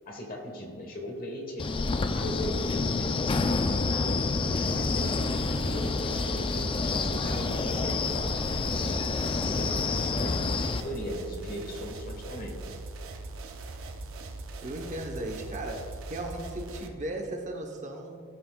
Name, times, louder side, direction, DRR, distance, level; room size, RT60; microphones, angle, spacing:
voice 1, 0.1-1.7 2.1-3.6 3.9-5.3 5.7-8.4 8.7-9.0 9.3-12.6, left 1 dB, 45° left, 2 dB, 1.2 m, -38 dB
Wind, 1.6-10.8, left 3 dB, 25° left, 0.3 m, -28 dB
sound 1, 4.6-16.9, right 2 dB, 65° right, 0.7 m, -41 dB
voice 2, 14.6-15.8 16.1-18.2, right 1 dB, 35° right, 3 dB, 0.8 m, -36 dB
14.5 x 5.9 x 2.3 m, 2.3 s
head